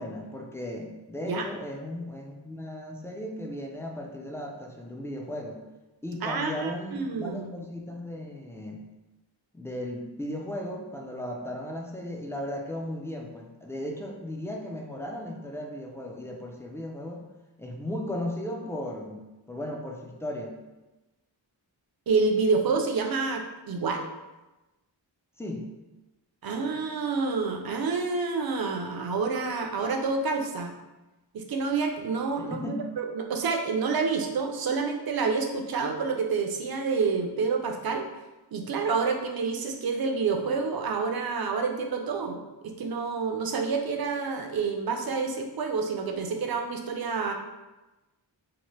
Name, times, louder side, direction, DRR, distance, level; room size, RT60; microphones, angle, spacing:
voice 1, 0.0-5.6 6.0-8.8 9.5-17.2 17.6-20.5 25.4-25.7 32.3-32.9, left 1 dB, 5° left, 0 dB, 0.3 m, -36 dB
voice 2, 6.2-7.5 22.1-24.0 26.4-30.7 31.3-38.1 38.5-47.3, right 4 dB, 50° right, 3 dB, 0.5 m, -28 dB
2.8 x 2.1 x 3.0 m, 1.1 s
wide cardioid pair, 55°, 46 cm